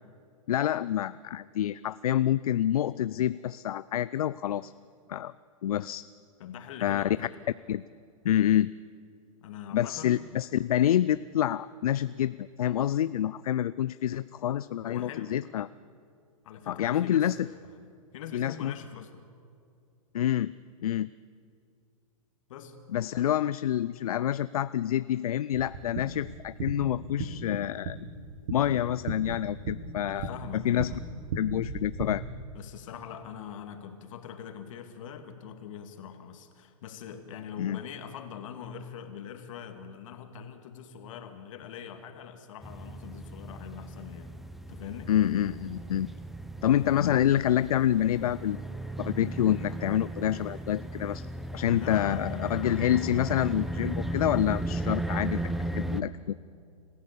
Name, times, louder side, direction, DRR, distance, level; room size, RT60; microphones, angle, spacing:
voice 1, 0.5-4.7 5.1-5.3 5.6-6.0 6.8-7.3 7.7-7.8 8.2-8.7 9.7-15.7 16.7-17.5 18.3-18.7 20.1-20.5 20.8-21.1 22.9-28.0 28.5-30.9 31.4-32.2 37.6-37.8 45.1-46.1 46.6-48.6 49.0-51.3 51.5-56.4, left 11 dB, 80° left, 16 dB, 0.5 m, -27 dB
voice 2, 6.4-7.3 9.4-10.2 14.9-15.4 16.4-17.9 18.1-19.3 22.5-22.7 30.1-31.0 32.5-44.3 44.7-45.1 51.7-52.5, left 8 dB, 60° left, 6 dB, 2.4 m, -43 dB
sound 1, 25.5-32.1, right 3 dB, 60° right, 2.6 m, -37 dB
sound 2, 42.6-56.0, right 1 dB, ahead, 0.7 m, -36 dB
27.0 x 15.0 x 6.9 m, 2.5 s
hypercardioid pair, 125°, 18 cm